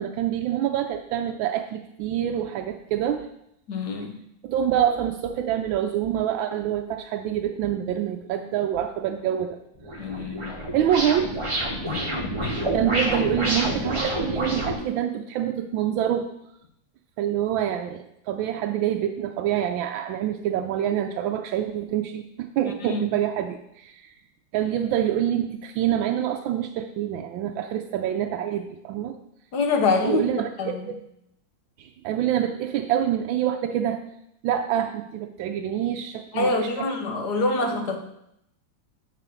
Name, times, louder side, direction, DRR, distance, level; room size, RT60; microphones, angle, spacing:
voice 1, 0.0-3.3 4.4-9.6 10.1-10.3 10.7-11.3 12.7-16.3 17.2-24.1 24.5-29.1 30.0-31.0 31.8-34.0 34.4-36.9 37.7-37.8, right 10 dB, 85° right, 4 dB, 1.4 m, -26 dB
voice 2, 3.7-4.2 10.0-10.6 11.9-12.1 12.4-12.6 22.8-23.1 29.5-30.9 36.3-38.0, left 3 dB, 60° left, 4 dB, 1.5 m, -26 dB
sound 1, 9.8-14.7, right 1 dB, 20° right, 1.2 m, -28 dB
9.0 x 4.2 x 6.2 m, 0.77 s
omnidirectional pair, 2.1 m